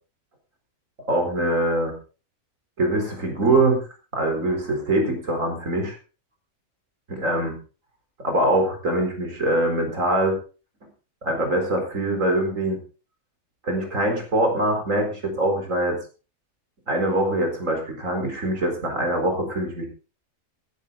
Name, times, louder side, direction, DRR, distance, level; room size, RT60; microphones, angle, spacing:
voice 1, 1.1-2.0 2.8-3.8 4.1-6.0 7.1-7.6 8.2-10.4 11.2-12.8 13.6-16.0 16.9-19.9, right 1 dB, 60° right, 3 dB, 4.5 m, -23 dB
14.5 x 12.5 x 4.0 m, 0.35 s
omnidirectional pair, 1.5 m